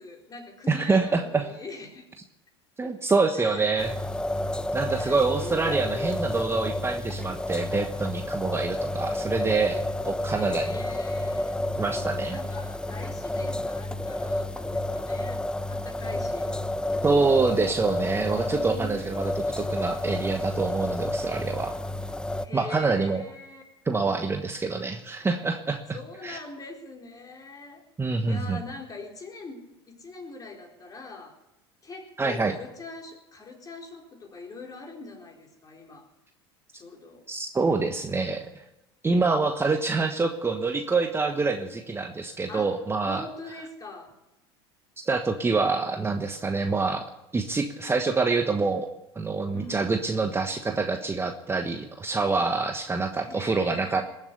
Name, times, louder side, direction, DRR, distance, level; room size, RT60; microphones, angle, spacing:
voice 1, 0.0-2.1 2.8-3.0 3.3-3.7 4.9-6.2 10.2-11.7 12.3-16.6 18.3-19.0 22.4-23.6 25.9-27.9 28.3-31.4 31.8-36.1 36.7-37.3 42.5-42.7 43.1-44.1 49.5-49.8 53.2-54.0, left 3 dB, 25° left, 1 dB, 4.2 m, -42 dB
voice 2, 0.7-1.4 2.8-3.9 4.7-10.8 11.8-12.4 17.0-21.8 22.5-23.2 23.9-25.8 26.2-26.4 28.0-28.6 32.2-32.5 37.3-38.6 39.0-43.2 45.1-47.1 47.3-54.0, right 4 dB, 20° right, 5 dB, 1.3 m, -26 dB
sound 1, 3.8-22.5, left 1 dB, 5° left, 0.7 m, -30 dB
20.0 x 7.3 x 9.8 m, 0.91 s
hypercardioid pair, 85°, 14 cm